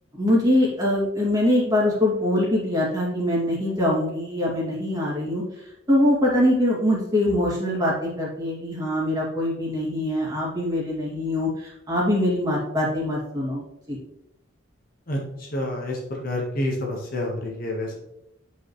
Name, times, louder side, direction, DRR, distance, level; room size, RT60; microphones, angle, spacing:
voice 1, 0.2-5.4 5.9-14.0, left 1 dB, 20° right, -5 dB, 2.4 m, -23 dB
voice 2, 15.5-16.0 16.2-18.0, left 1 dB, 45° left, -1 dB, 1.5 m, -28 dB
9.1 x 5.6 x 3.2 m, 0.83 s
head